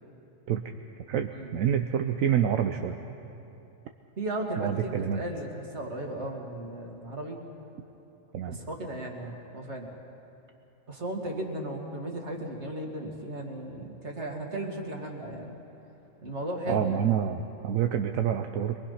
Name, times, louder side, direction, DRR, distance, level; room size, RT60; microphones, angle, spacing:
voice 1, 1.1-3.0 4.6-5.2 8.3-8.6 16.7-18.8, right 9 dB, 80° right, 6 dB, 1.1 m, -27 dB
voice 2, 4.2-7.4 8.4-10.0 10.9-15.5 16.2-17.0, right 1 dB, 55° right, 1 dB, 2.5 m, -35 dB
23.0 x 23.0 x 5.7 m, 2.9 s
omnidirectional pair, 1.4 m